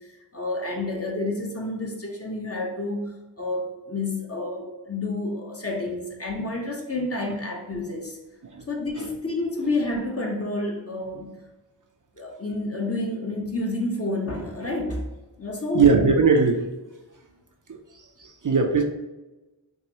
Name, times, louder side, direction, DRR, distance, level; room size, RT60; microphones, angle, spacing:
voice 1, 0.0-8.2 8.7-11.4 12.2-15.0 15.4-15.8, left 2 dB, 35° left, 0 dB, 1.0 m, -29 dB
voice 2, 15.7-16.7 17.7-17.8 18.2-18.8, right 4 dB, 45° right, 3 dB, 0.6 m, -19 dB
6.0 x 2.6 x 2.9 m, 1.1 s
cardioid pair, 45°, 43 cm